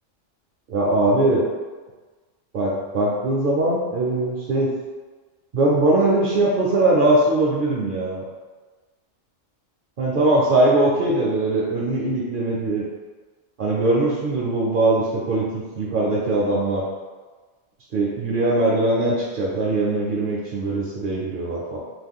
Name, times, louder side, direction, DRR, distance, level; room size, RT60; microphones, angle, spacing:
voice 1, 0.7-1.4 2.5-4.7 5.5-8.2 10.0-12.8 13.6-15.4 15.8-16.8 17.9-21.8, right 2 dB, 60° right, -4 dB, 0.6 m, -21 dB
3.0 x 2.2 x 3.5 m, 1.4 s
omnidirectional pair, 1.2 m